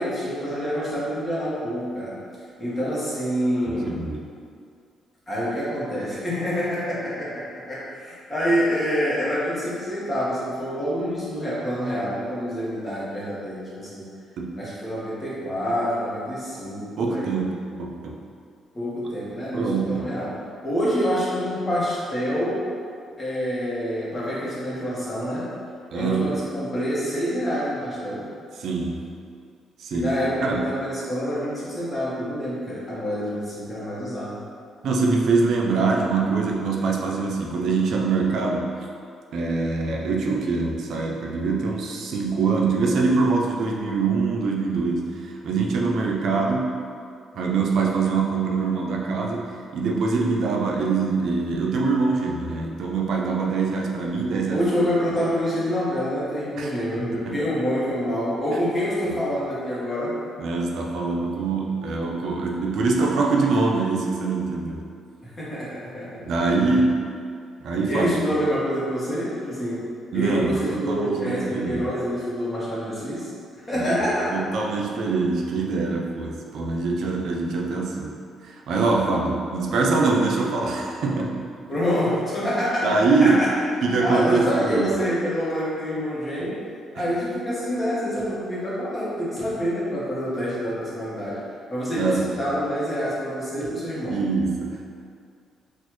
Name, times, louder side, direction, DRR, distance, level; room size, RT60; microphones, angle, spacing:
voice 1, 0.0-2.2 2.6-4.0 5.3-14.1 14.6-17.4 18.7-22.7 23.2-25.6 25.9-28.3 29.9-34.4 54.5-60.1 65.2-66.3 67.9-69.8 70.1-73.3 73.7-74.3 80.0-80.2 81.7-83.5 84.0-86.7 86.9-91.4 91.7-94.2, equal, 25° left, -8 dB, 1.2 m, -27 dB
voice 2, 3.8-4.2 14.4-14.6 17.0-18.2 19.5-20.0 25.9-26.4 28.6-29.0 29.8-30.1 30.4-30.7 34.8-38.7 39.3-46.7 47.3-54.6 56.6-56.7 57.2-57.4 60.4-64.8 66.2-67.1 67.6-68.2 70.1-71.8 73.8-74.0 74.3-81.8 82.8-83.4 83.8-84.9 86.4-86.5 87.0-87.1 92.0-92.3 94.1-94.8, right 4 dB, 70° right, -1 dB, 0.4 m, -24 dB
4.2 x 2.4 x 2.9 m, 2.3 s
cardioid pair, 90°, 0 cm